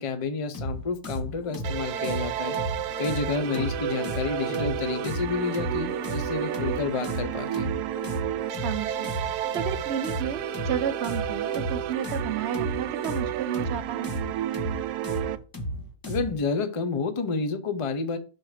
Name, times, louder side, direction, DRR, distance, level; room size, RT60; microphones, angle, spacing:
voice 1, 0.0-2.6 3.0-7.7 16.1-18.2, left 4 dB, 55° left, 10 dB, 0.3 m, -30 dB
sound 1, 0.5-16.4, equal, 15° left, 0.8 m, -34 dB
sound 2, 1.4-13.3, left 8 dB, 75° left, 1.2 m, -44 dB
sound 3, 1.6-15.4, right 12 dB, 85° right, 1.1 m, -31 dB
voice 2, 8.6-14.1, right 9 dB, 55° right, 9 dB, 0.8 m, -32 dB
6.3 x 4.5 x 4.8 m, 0.37 s
omnidirectional pair, 1.7 m